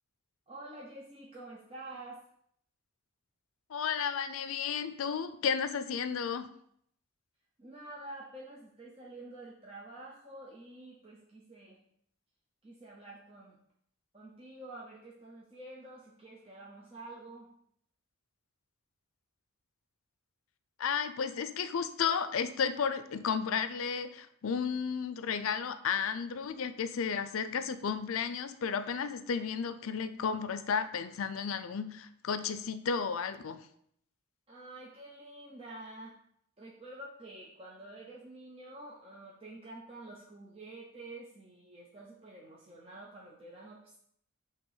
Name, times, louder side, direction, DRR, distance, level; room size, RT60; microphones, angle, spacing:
voice 1, 0.5-2.2 7.6-11.8 12.6-13.6 14.1-17.5 34.5-36.1 36.6-44.0, right 2 dB, 25° right, -4 dB, 0.7 m, -48 dB
voice 2, 3.7-6.5 20.8-33.6, left 6 dB, 75° left, 11 dB, 0.4 m, -33 dB
5.8 x 2.9 x 5.5 m, 0.69 s
head